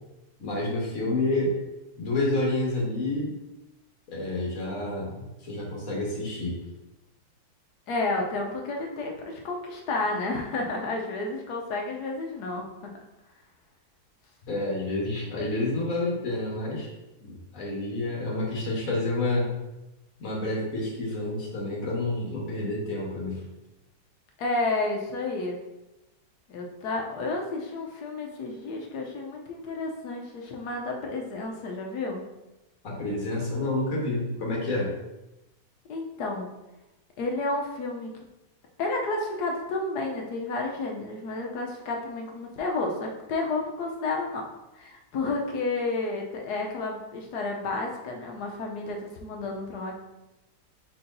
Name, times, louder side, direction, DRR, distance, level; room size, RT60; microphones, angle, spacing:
voice 1, 0.4-1.6 2.0-3.3 4.1-6.6 14.5-16.9 17.2-19.6 20.2-23.4 32.8-34.9, left 2 dB, 50° left, -3 dB, 1.5 m, -29 dB
voice 2, 7.9-12.6 24.4-25.6 26.5-32.2 35.9-36.5 37.2-38.2 38.8-44.5 44.7-50.0, left 3 dB, 70° left, 1 dB, 1.2 m, -31 dB
4.6 x 4.2 x 2.6 m, 0.96 s
omnidirectional pair, 2.0 m